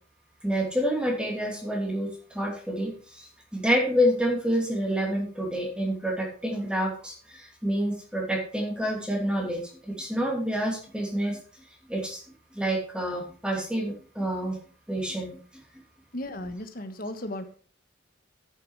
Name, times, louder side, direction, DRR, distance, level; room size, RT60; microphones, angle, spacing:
voice 1, 0.4-11.4 11.9-12.2 12.5-14.6 14.9-15.4, equal, 5° right, 0 dB, 2.7 m, -28 dB
voice 2, 16.1-17.5, left 1 dB, 45° left, 8 dB, 1.5 m, -35 dB
10.0 x 9.0 x 4.8 m, 0.42 s
head